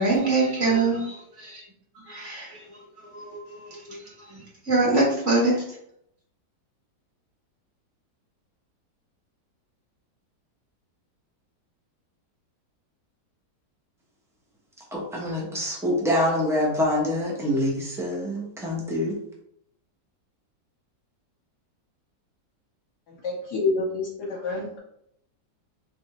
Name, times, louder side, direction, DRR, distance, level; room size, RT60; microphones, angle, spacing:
voice 1, 0.0-1.6 2.1-2.6 3.1-4.0 4.3-4.4 4.7-5.6, right 2 dB, 45° right, -5 dB, 1.8 m, -24 dB
voice 2, 14.9-19.2, left 1 dB, 5° right, -3 dB, 0.6 m, -25 dB
voice 3, 23.1-24.8, left 3 dB, 70° left, -4 dB, 1.4 m, -28 dB
4.2 x 3.4 x 3.1 m, 0.73 s
omnidirectional pair, 1.9 m